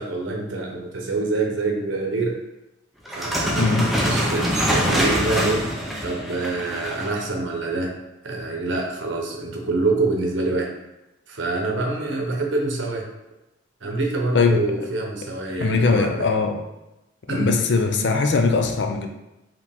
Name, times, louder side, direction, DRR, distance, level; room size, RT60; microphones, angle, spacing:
voice 1, 0.0-2.4 3.1-5.7 6.0-7.9 8.2-10.7 11.3-13.1 13.8-16.3 17.3-17.5, right 3 dB, 70° right, 0 dB, 0.9 m, -26 dB
sound 1, 3.1-7.2, equal, ahead, 0.6 m, -24 dB
voice 2, 3.6-3.9 14.3-14.6 15.6-16.6 17.3-19.1, left 4 dB, 60° left, 5 dB, 0.5 m, -20 dB
4.7 x 2.9 x 3.5 m, 0.95 s
head